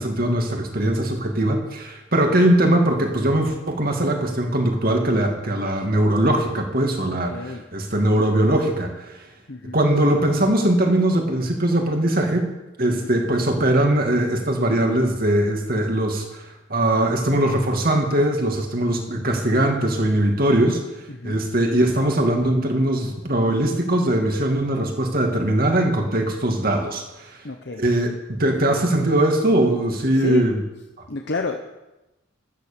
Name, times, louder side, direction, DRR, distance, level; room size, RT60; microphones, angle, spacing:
voice 1, 0.0-9.2 9.7-12.5 12.8-20.8 21.2-27.4 27.8-30.6, right 1 dB, 45° right, 3 dB, 2.5 m, -21 dB
voice 2, 7.1-7.6 9.5-9.8 12.9-13.1 21.1-21.4 27.4-27.8 30.1-30.4 31.1-31.6, left 3 dB, 55° left, 4 dB, 1.0 m, -30 dB
14.5 x 12.0 x 7.0 m, 1.0 s
head